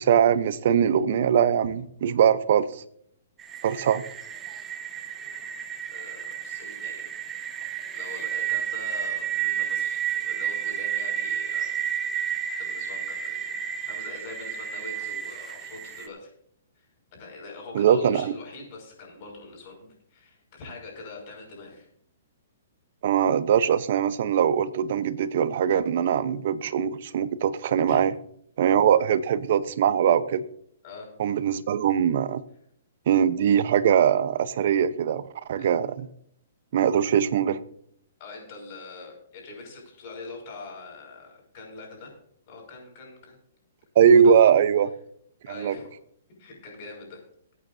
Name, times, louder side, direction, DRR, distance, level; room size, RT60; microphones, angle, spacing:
voice 1, 0.0-2.8 3.6-4.0 17.7-18.3 23.0-28.1 28.6-30.4 31.2-32.4 33.1-35.2 35.5-36.1 36.7-37.6 44.0-44.9 45.5-45.7, right 8 dB, 55° right, 15 dB, 0.8 m, -21 dB
sound 1, 3.4-16.1, right 9 dB, 15° right, 0.9 m, -31 dB
voice 2, 5.9-7.1 7.4-7.6 7.9-11.7 12.6-13.4 13.9-16.3 16.7-16.9 17.1-21.9 27.9-28.0 30.8-31.1 35.6-35.7 38.2-42.1 42.5-43.4 44.1-44.5 45.5-45.9 46.4-47.2, left 3 dB, 40° left, 0 dB, 5.7 m, -43 dB
23.0 x 8.8 x 2.7 m, 0.68 s
hypercardioid pair, 155°, 0 cm